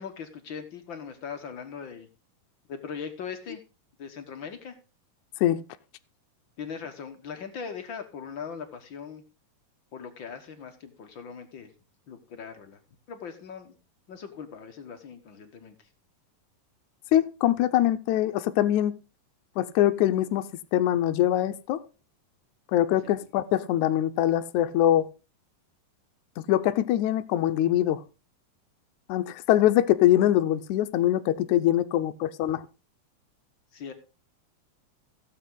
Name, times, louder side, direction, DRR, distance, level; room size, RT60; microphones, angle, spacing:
voice 1, 0.0-2.1 2.7-3.6 4.0-4.8 6.6-9.2 9.9-11.7 12.1-12.8 13.1-13.7 14.1-15.7 23.0-23.2 33.7-33.9, left 6 dB, 50° left, 1.5 m, -40 dB
voice 2, 17.1-18.9 19.6-21.8 22.7-25.1 26.4-28.0 29.1-32.6, left 12 dB, 75° left, 2.0 m, -23 dB
15.5 x 8.3 x 3.9 m
omnidirectional pair, 3.8 m